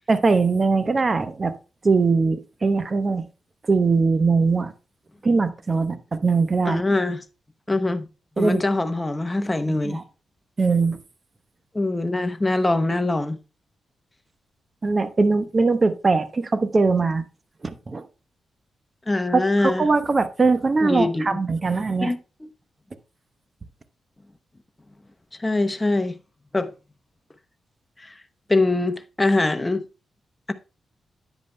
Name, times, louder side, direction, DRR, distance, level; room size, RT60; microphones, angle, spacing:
voice 1, 0.1-1.5 1.8-3.2 3.7-4.7 5.2-6.8 8.4-8.6 9.8-10.0 10.6-11.0 14.8-17.2 17.6-18.0 19.3-22.1, right 4 dB, 40° right, 0.9 m, -21 dB
voice 2, 6.6-7.2 7.7-8.1 8.4-10.0 11.7-13.4 19.1-19.9 20.8-21.4 22.0-22.5 25.4-26.1 26.5-26.7 28.0-28.1 28.5-29.8 30.5-30.6, left 2 dB, 20° left, 0.8 m, -23 dB
10.5 x 8.2 x 2.2 m
supercardioid pair, 45°, 0 cm